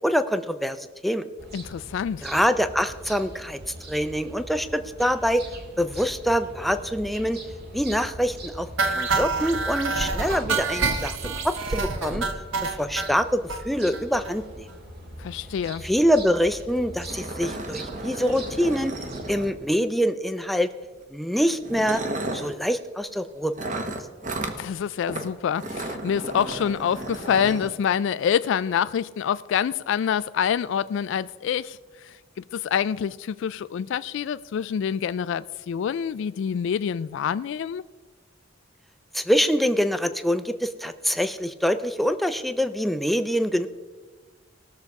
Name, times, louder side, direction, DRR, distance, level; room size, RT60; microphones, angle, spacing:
voice 1, 0.0-1.3 2.2-3.6 3.9-5.4 5.8-7.4 7.7-12.2 12.6-14.7 15.8-18.9 19.3-20.7 21.1-22.0 22.3-23.5 39.1-43.7, equal, ahead, 0.5 m, -25 dB
sound 1, 1.4-19.5, right 1 dB, 55° right, 2.0 m, -42 dB
voice 2, 1.5-2.3 15.2-15.9 24.6-37.8, left 8 dB, 70° left, 0.3 m, -26 dB
sound 2, 8.8-13.1 13.5-13.6 13.9-14.0 14.3-14.4 14.7-14.8, right 4 dB, 80° right, 1.1 m, -27 dB
sound 3, 16.3-16.4 16.7-16.8 17.1-19.8 20.8-21.0 21.6-22.5 23.6-24.6 25.1-25.3 25.6-27.7, right 2 dB, 40° right, 1.1 m, -33 dB
18.5 x 6.7 x 4.7 m
head